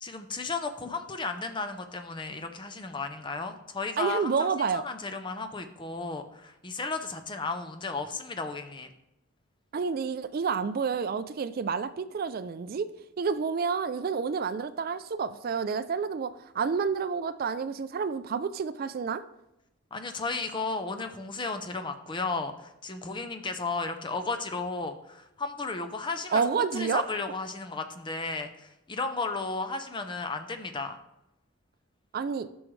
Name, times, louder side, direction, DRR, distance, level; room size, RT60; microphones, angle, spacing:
voice 1, 0.0-8.9 19.9-31.0, left 3 dB, 25° left, 7 dB, 0.6 m, -34 dB
voice 2, 4.0-4.8 9.7-12.9 13.2-19.2 26.3-27.0 32.1-32.5, right 5 dB, 45° right, 13 dB, 0.3 m, -29 dB
11.0 x 6.2 x 3.2 m, 0.86 s
head